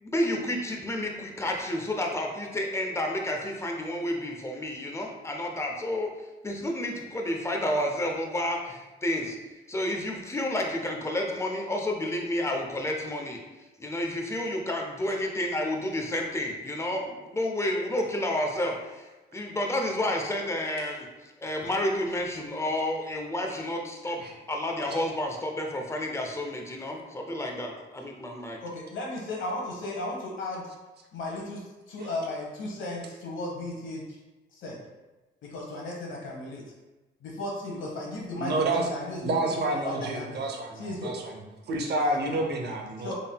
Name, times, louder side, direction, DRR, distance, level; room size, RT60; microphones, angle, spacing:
voice 1, 0.0-6.1 6.4-9.4 9.7-13.4 13.8-19.1 19.3-21.1 21.4-24.2 24.5-28.6, left 1 dB, 15° left, 1 dB, 0.6 m, -30 dB
voice 2, 28.6-30.7 31.1-34.0 34.6-34.8 35.4-36.6 37.2-40.4 40.8-41.1 42.0-42.4 43.0-43.1, left 2 dB, 80° left, -1 dB, 1.1 m, -35 dB
voice 3, 38.4-38.9 39.2-43.1, right 2 dB, 55° right, 1 dB, 0.7 m, -29 dB
3.7 x 3.6 x 2.2 m, 1.1 s
cardioid pair, 90°, 20 cm